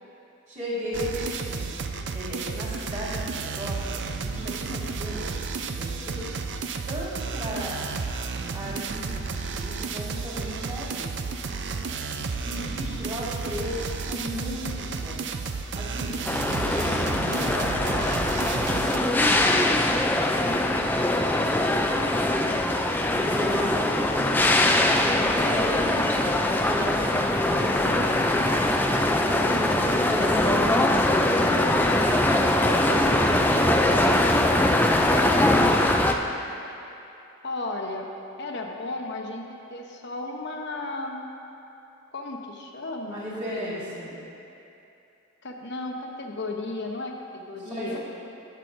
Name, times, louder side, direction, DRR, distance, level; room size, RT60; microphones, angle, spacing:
voice 1, 0.5-6.2 6.9-7.8 8.5-11.2 12.4-15.4 15.7-16.2 16.4-19.7 20.2-20.5 20.9-22.0 23.1-26.3 26.7-28.1 28.4-35.7 43.0-44.1 47.6-48.0, equal, 30° right, -8 dB, 2.5 m, -36 dB
sound 1, 0.9-19.0, right 4 dB, 55° right, 0.4 m, -32 dB
voice 2, 12.7-13.0 23.2-23.7 37.4-38.1 38.4-41.3 42.1-43.2 43.5-43.9 45.4-48.0, left 2 dB, 50° left, 1 dB, 0.9 m, -35 dB
sound 2, 16.2-36.1, left 1 dB, 10° left, 0.3 m, -22 dB
18.5 x 7.4 x 2.6 m, 2.8 s
head